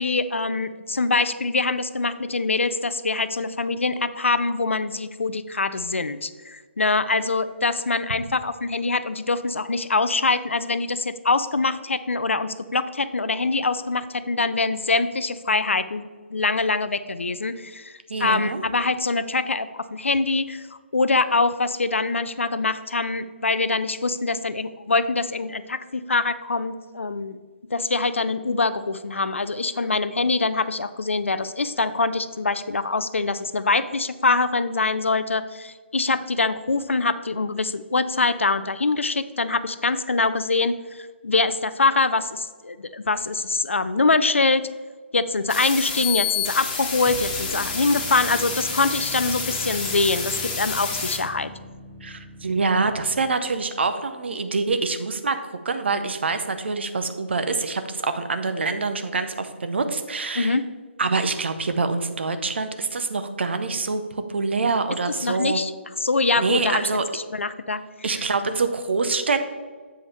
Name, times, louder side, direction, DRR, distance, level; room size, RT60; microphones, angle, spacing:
voice 1, 0.0-16.0 16.3-17.9 18.2-20.6 20.9-27.4 27.7-44.7 45.1-51.5 60.4-60.6 65.2-65.7 66.0-67.8 68.2-68.3, left 3 dB, 75° left, 14 dB, 0.5 m, -24 dB
voice 2, 18.1-18.6 52.0-60.6 61.0-65.6 66.4-67.0 68.0-69.4, right 4 dB, 60° right, 9 dB, 0.7 m, -25 dB
sound 1, 45.5-51.2, left 5 dB, 25° left, 1.3 m, -29 dB
sound 2, 47.0-53.5, equal, 10° right, 0.7 m, -41 dB
7.9 x 5.0 x 4.1 m, 1.5 s
figure-of-eight pair, 140°, 7 cm